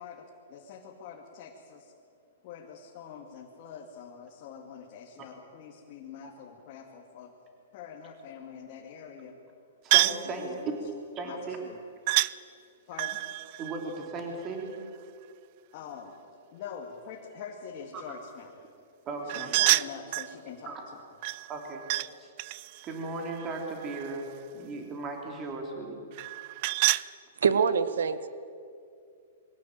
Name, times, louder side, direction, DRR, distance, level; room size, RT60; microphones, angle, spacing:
voice 1, 0.0-1.9 2.4-7.3 7.7-9.4 10.2-10.7 11.2-11.8 12.9-13.2 15.7-16.2 16.5-18.7 19.2-20.8, left 7 dB, 40° left, -1 dB, 2.3 m, -44 dB
voice 2, 9.8-10.5 11.1-11.6 13.6-14.7 17.9-18.1 19.0-19.6 20.6-20.8 21.5-21.8 22.1-22.3 22.8-24.3 24.5-26.0, right 3 dB, 25° right, 2 dB, 3.4 m, -37 dB
sound 1, 9.9-10.3 12.1-12.3 12.9-14.8 19.3-20.3 21.2-22.1 22.4-24.3 26.1-27.1, right 19 dB, 40° right, 0.4 m, -28 dB
voice 3, 27.4-28.3, right 6 dB, 85° right, 14 dB, 1.2 m, -24 dB
23.0 x 17.5 x 9.0 m, 2.4 s
hypercardioid pair, 155°, 0 cm